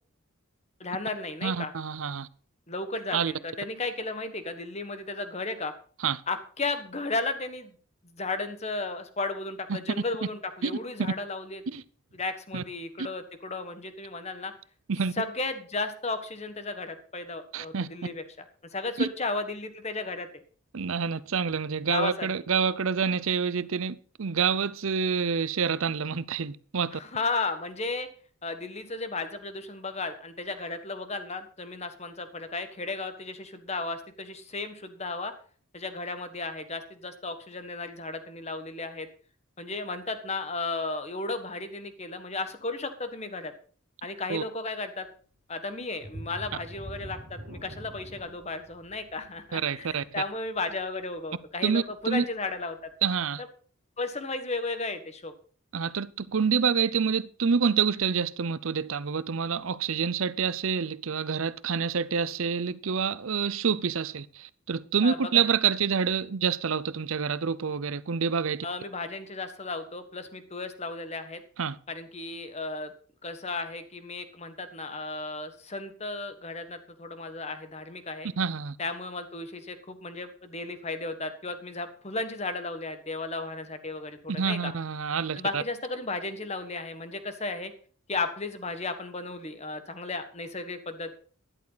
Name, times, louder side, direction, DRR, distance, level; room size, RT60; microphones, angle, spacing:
voice 1, 0.8-1.7 2.7-5.7 6.3-7.7 8.0-11.6 12.1-14.5 15.2-18.4 18.7-20.4 21.8-22.3 26.9-28.1 28.4-35.3 35.7-39.1 39.6-43.5 44.0-45.1 45.5-52.8 54.0-55.3 65.0-65.5 68.6-71.4 71.9-72.9 73.2-78.3 78.8-84.7 85.4-87.7 88.1-91.1, left 3 dB, 30° left, 1.4 m, -34 dB
voice 2, 1.4-2.3 3.1-3.3 6.0-6.2 9.7-9.8 10.6-10.7 11.0-11.1 11.7-11.8 12.5-12.6 14.9-15.1 17.5-17.9 19.0-19.1 20.7-27.0 44.3-44.4 49.5-50.0 51.6-52.2 53.0-53.4 55.7-68.7 71.6-71.8 78.4-78.8 84.3-85.6, right 6 dB, 70° right, 0.6 m, -27 dB
sound 1, 46.0-51.4 51.9-52.0 52.5-52.6, equal, 55° right, 2.3 m, -44 dB
13.0 x 11.0 x 4.0 m
head